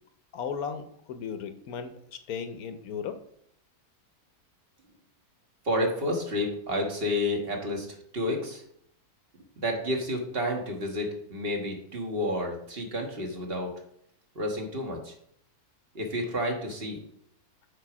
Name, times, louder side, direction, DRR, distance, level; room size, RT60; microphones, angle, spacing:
voice 1, 0.3-3.2, left 6 dB, 70° left, 9 dB, 1.2 m, -36 dB
voice 2, 5.6-7.9 8.1-8.6 9.6-13.7 14.3-15.1 15.9-17.0, left 1 dB, 40° right, 2 dB, 1.6 m, -30 dB
6.8 x 4.8 x 6.0 m, 0.70 s
omnidirectional pair, 1.6 m